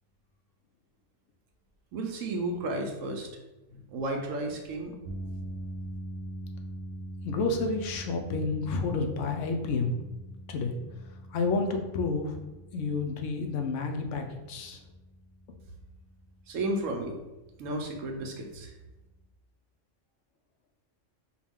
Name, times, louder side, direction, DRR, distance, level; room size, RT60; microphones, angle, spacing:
voice 1, 1.9-3.3 3.7-5.0 16.5-17.2 17.6-18.7, right 2 dB, 90° right, 3 dB, 1.1 m, -33 dB
sound 1, 5.0-19.3, right 1 dB, 65° right, 0.8 m, -44 dB
voice 2, 7.2-9.9 10.5-10.8 11.3-12.4 12.7-14.8, left 3 dB, 75° left, 4 dB, 0.9 m, -30 dB
4.7 x 2.2 x 3.5 m, 1.0 s
omnidirectional pair, 1.3 m